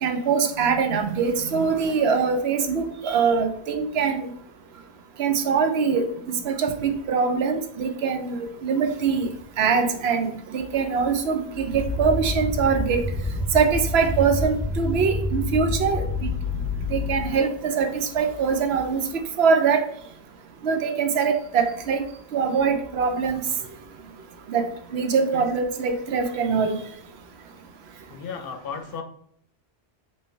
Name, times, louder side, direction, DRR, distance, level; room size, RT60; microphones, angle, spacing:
voice 1, 0.0-4.3 5.2-9.3 9.6-13.0 13.5-16.1 16.9-19.0 19.4-19.8 20.6-22.0 22.3-23.4 24.5-24.7 24.9-26.8, right 5 dB, 75° right, 6 dB, 0.8 m, -23 dB
sound 1, 11.6-17.4, left 2 dB, 20° right, 0.8 m, -28 dB
voice 2, 28.1-29.0, left 6 dB, 65° left, 5 dB, 0.7 m, -34 dB
3.1 x 2.8 x 4.3 m, 0.67 s
omnidirectional pair, 1.1 m